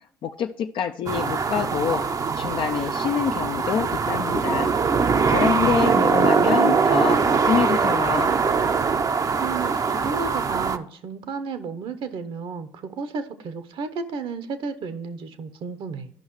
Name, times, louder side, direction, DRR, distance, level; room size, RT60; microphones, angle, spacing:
voice 1, 0.2-2.0 2.4-4.7 5.3-8.3, left 8 dB, 60° left, 5 dB, 0.4 m, -26 dB
sound 1, 1.1-10.8, right 5 dB, 35° right, 0.6 m, -22 dB
voice 2, 5.5-6.1 9.4-16.1, right 5 dB, 60° right, 10 dB, 0.9 m, -33 dB
13.0 x 5.4 x 3.1 m, 0.70 s
hypercardioid pair, 60°, 10 cm